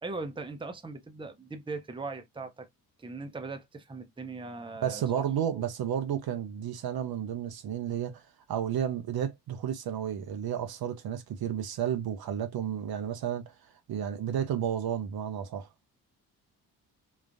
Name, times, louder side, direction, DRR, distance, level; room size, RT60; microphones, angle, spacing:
voice 1, 0.0-2.7 3.0-5.3 5.5-5.6, right 3 dB, 10° right, 0.7 m, -39 dB
voice 2, 4.8-13.5 13.9-15.7, right 9 dB, 50° right, 0.7 m, -32 dB
3.8 x 2.4 x 2.5 m
hypercardioid pair, 40°, 46 cm